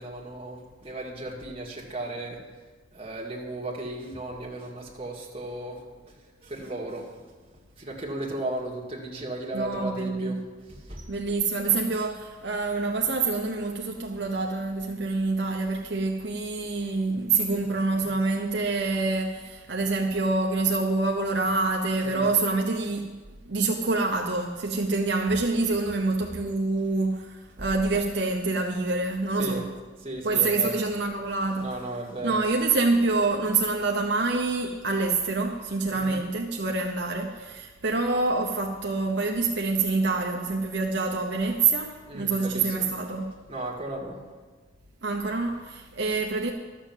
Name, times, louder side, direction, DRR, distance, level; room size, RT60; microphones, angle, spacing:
voice 1, 0.0-2.4 2.9-7.3 7.8-10.4 10.7-11.1 16.6-16.7 17.1-17.2 17.5-17.6 17.9-18.0 22.0-22.3 27.6-27.7 29.4-29.6 30.0-30.8 31.6-32.4 35.8-36.2 42.1-43.2 43.5-44.3, right 2 dB, 30° right, 2.1 m, -36 dB
voice 2, 9.5-10.4 11.1-23.1 23.5-29.7 30.2-31.8 32.2-43.4 45.0-46.5, right 3 dB, 65° right, 0.8 m, -26 dB
12.5 x 7.1 x 7.3 m
head